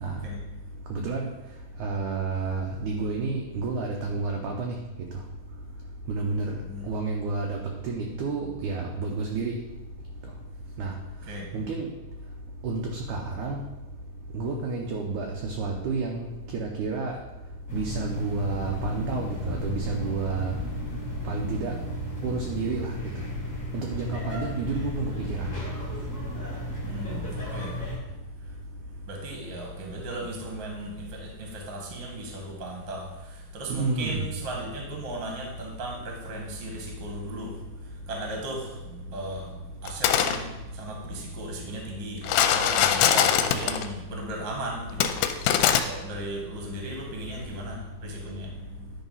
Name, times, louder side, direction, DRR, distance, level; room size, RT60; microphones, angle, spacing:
voice 1, 0.9-1.3 1.8-4.8 6.1-9.6 10.8-11.0 11.5-11.9 12.6-13.6 14.3-17.2 17.7-20.6 21.2-21.8 22.2-23.0 23.7-25.5 33.7-34.2, right 4 dB, 75° right, 1 dB, 1.8 m, -30 dB
sound 1, 17.7-28.0, left 1 dB, 5° left, 1.5 m, -34 dB
voice 2, 21.1-21.7 26.8-27.7 29.1-37.5 38.1-39.5 39.8-45.0 45.8-48.9, right 1 dB, 45° right, 0 dB, 1.6 m, -37 dB
sound 2, 39.9-40.4 42.2-43.9 45.0-45.8, left 10 dB, 80° left, 2.3 m, -22 dB
10.5 x 4.0 x 5.4 m, 1.1 s
omnidirectional pair, 4.4 m